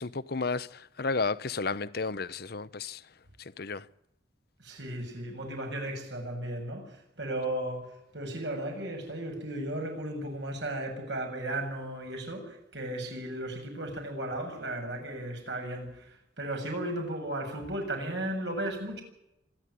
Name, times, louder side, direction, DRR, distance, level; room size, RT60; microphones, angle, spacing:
voice 1, 0.0-3.0 3.4-3.8, left 4 dB, 55° left, 0.8 m, -32 dB
voice 2, 4.6-6.9 7.2-19.0, right 1 dB, 70° right, 7.4 m, -35 dB
26.0 x 11.0 x 10.0 m
head